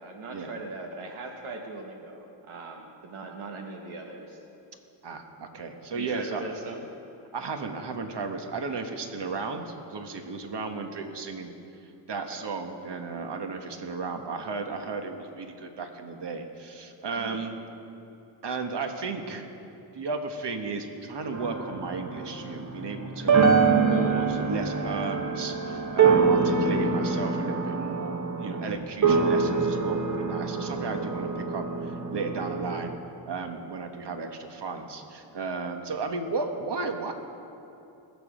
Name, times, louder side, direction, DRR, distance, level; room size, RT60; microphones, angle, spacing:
voice 1, 0.0-4.4 5.9-6.9 12.2-12.4 17.2-17.4 26.8-26.9, right 3 dB, 80° right, 2 dB, 1.3 m, -40 dB
voice 2, 5.0-6.4 7.3-11.5 11.8-17.6 18.4-19.5 19.9-23.4 23.9-32.9 33.3-37.1, right 4 dB, 55° right, 5 dB, 1.6 m, -34 dB
sound 1, 21.3-33.0, right 5 dB, 35° right, 1.4 m, -25 dB
22.0 x 7.4 x 5.2 m, 2.8 s
cardioid pair, 55°, 49 cm